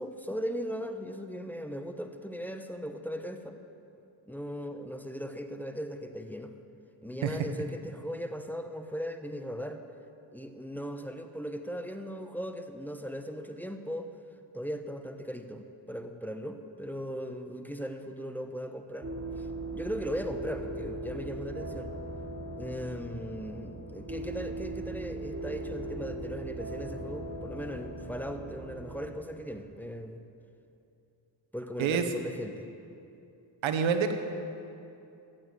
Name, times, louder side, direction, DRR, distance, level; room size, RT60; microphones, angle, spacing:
voice 1, 0.0-3.6 4.3-6.5 7.0-9.8 10.3-14.1 14.5-19.1 19.4-19.5 19.7-21.9 22.6-30.2 31.5-32.7, equal, 5° left, 6 dB, 1.1 m, -38 dB
sound 1, 19.0-29.1, right 2 dB, 30° right, 2.6 m, -39 dB
voice 2, 33.6-34.1, right 7 dB, 90° right, 8 dB, 1.0 m, -26 dB
14.5 x 8.9 x 7.8 m, 2.7 s
cardioid pair, 55°, 46 cm